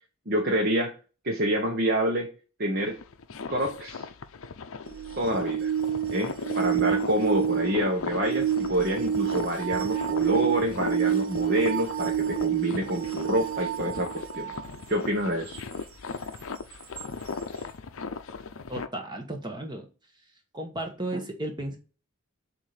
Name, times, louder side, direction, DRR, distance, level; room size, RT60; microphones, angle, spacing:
voice 1, 0.3-0.9 1.2-2.3 2.6-3.0 3.5-4.1 5.2-5.7 6.1-14.5 14.9-15.6, right 1 dB, 45° right, 1 dB, 0.9 m, -27 dB
sound 1, 2.8-18.9, left 4 dB, 70° left, 0.5 m, -38 dB
sound 2, 4.9-14.7 17.0-17.1, right 9 dB, 65° right, 0.6 m, -28 dB
voice 2, 18.7-19.9 20.5-21.8, right 1 dB, 20° right, 4 dB, 1.1 m, -34 dB
7.2 x 2.7 x 4.9 m, 0.34 s
head